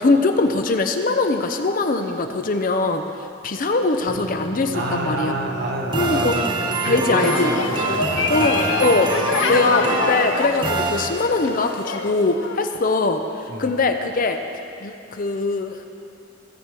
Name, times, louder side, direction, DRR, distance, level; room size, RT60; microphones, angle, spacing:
voice 1, 0.0-3.0 3.4-5.3 5.9-6.4 6.8-7.5 8.3-14.4 14.8-15.9, left 3 dB, 45° left, 6 dB, 0.6 m, -21 dB
sound 1, 4.1-11.5, right 2 dB, 65° left, 2.6 m, -37 dB
voice 2, 4.7-6.5 6.8-8.5 13.5-13.7, right 1 dB, 60° right, 1 dB, 1.2 m, -28 dB
sound 2, 5.9-11.6, right 3 dB, 25° right, 0.6 m, -26 dB
sound 3, 7.2-12.8, left 4 dB, 85° left, 0.6 m, -25 dB
16.5 x 6.0 x 4.8 m, 2.6 s
head